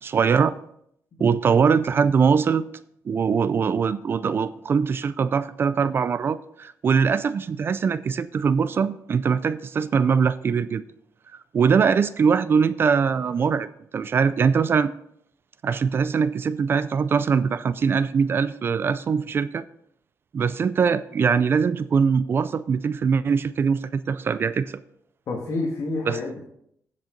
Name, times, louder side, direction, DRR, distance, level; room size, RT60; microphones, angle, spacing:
voice 1, 0.0-0.5 1.2-2.6 3.1-10.8 11.5-13.7 13.9-14.9 15.6-19.6 20.3-24.8 26.1-26.2, right 6 dB, 40° right, 14 dB, 0.4 m, -22 dB
voice 2, 25.3-26.4, left 2 dB, 55° left, -2 dB, 1.9 m, -29 dB
15.5 x 5.4 x 3.9 m, 0.71 s
cardioid pair, 135°, 6 cm